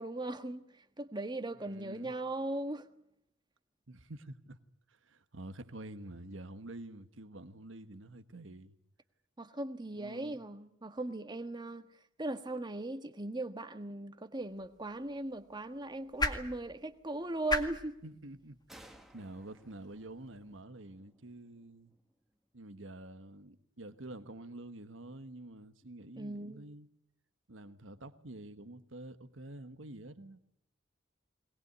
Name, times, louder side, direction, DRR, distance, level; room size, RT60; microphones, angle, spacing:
voice 1, 0.0-2.9 9.4-11.9 12.2-18.0 26.2-26.7, right 2 dB, 20° right, 1.4 m, -39 dB
voice 2, 1.6-2.1 3.9-4.6 4.9-8.8 10.0-10.4 18.0-22.0 22.5-26.9 27.5-30.4, right 2 dB, 70° right, 1.4 m, -48 dB
sound 1, 14.4-20.6, left 2 dB, 20° left, 2.1 m, -41 dB
sound 2, 18.7-22.2, equal, ahead, 1.7 m, -59 dB
21.5 x 20.0 x 9.4 m
head